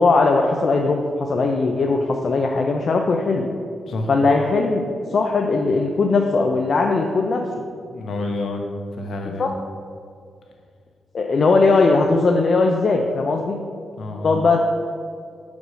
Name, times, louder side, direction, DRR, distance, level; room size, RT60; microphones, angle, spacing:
voice 1, 0.0-3.5 4.1-4.8 5.1-7.4 9.4-9.5 11.1-13.6 14.2-14.6, left 3 dB, 50° left, 2 dB, 0.5 m, -19 dB
voice 2, 7.8-8.7 8.9-9.5 14.0-14.3, left 2 dB, 65° left, 2 dB, 1.1 m, -29 dB
5.2 x 4.8 x 6.2 m, 2.2 s
cardioid pair, 105°, 0 cm